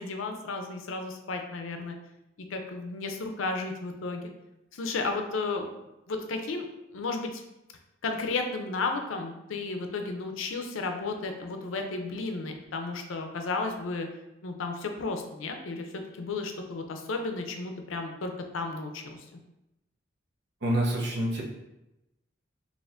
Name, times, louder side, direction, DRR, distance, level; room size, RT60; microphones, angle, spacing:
voice 1, 0.0-2.0 2.5-4.3 4.7-5.7 6.1-6.6 6.9-7.4 8.0-14.1 14.4-19.2, left 3 dB, 85° left, 4 dB, 0.5 m, -33 dB
voice 2, 20.6-21.4, right 1 dB, 60° right, -2 dB, 0.7 m, -27 dB
4.1 x 2.9 x 2.5 m, 0.93 s
head